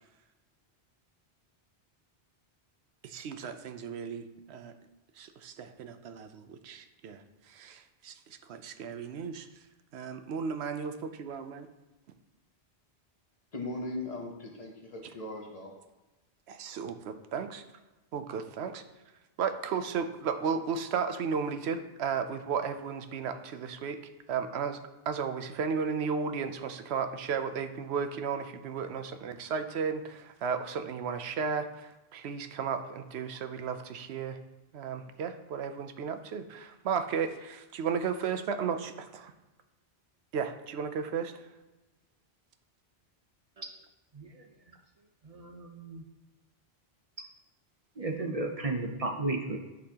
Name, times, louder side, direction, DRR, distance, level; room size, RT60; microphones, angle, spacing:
voice 1, 3.0-4.7 5.1-9.6 9.9-11.7 16.5-17.6 18.1-18.8 19.4-24.0 24.3-24.8 25.1-34.4 34.7-39.3 40.3-41.5, right 6 dB, 80° right, 8 dB, 0.9 m, -34 dB
voice 2, 13.5-15.7, left 2 dB, 40° left, 1 dB, 0.9 m, -38 dB
voice 3, 44.1-44.4 45.2-46.0 47.2-47.3 48.0-49.6, right 2 dB, 40° right, 3 dB, 0.7 m, -34 dB
11.0 x 4.2 x 2.9 m, 1.1 s
omnidirectional pair, 1.1 m